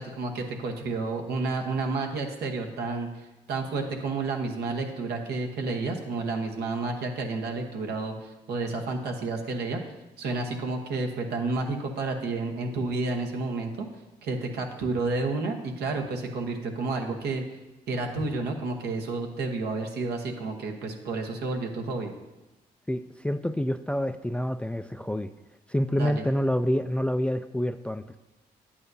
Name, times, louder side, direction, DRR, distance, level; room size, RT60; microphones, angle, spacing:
voice 1, 0.0-9.8 10.2-13.9 14.2-17.4 17.9-22.1 25.9-26.2, right 3 dB, 80° right, 2 dB, 1.1 m, -30 dB
voice 2, 22.9-25.3 25.7-28.2, equal, 5° left, 10 dB, 0.3 m, -27 dB
11.0 x 8.6 x 2.7 m, 1.0 s
supercardioid pair, 55°, 16 cm